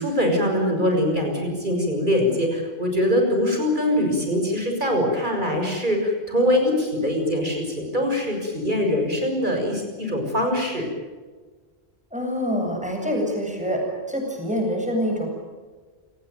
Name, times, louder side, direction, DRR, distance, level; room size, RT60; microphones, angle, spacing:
voice 1, 0.0-10.9, left 1 dB, 50° right, 3 dB, 6.7 m, -23 dB
voice 2, 12.1-13.8 14.1-15.3, equal, 5° right, 1 dB, 8.0 m, -25 dB
28.0 x 19.0 x 9.5 m, 1.4 s
omnidirectional pair, 1.1 m